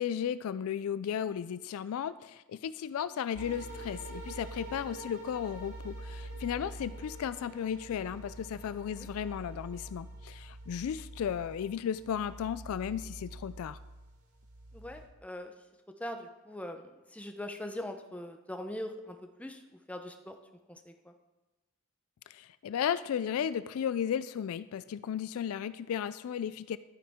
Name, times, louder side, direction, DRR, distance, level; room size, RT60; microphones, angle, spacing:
voice 1, 0.0-13.8 22.3-26.8, left 8 dB, 70° left, 15 dB, 0.3 m, -35 dB
sound 1, 3.3-15.1, right 1 dB, 80° right, 2.3 m, -45 dB
voice 2, 14.7-15.5 16.0-19.6 19.9-20.3 20.7-21.1, left 1 dB, 5° left, 5 dB, 0.7 m, -41 dB
12.0 x 9.3 x 3.6 m, 1.1 s
head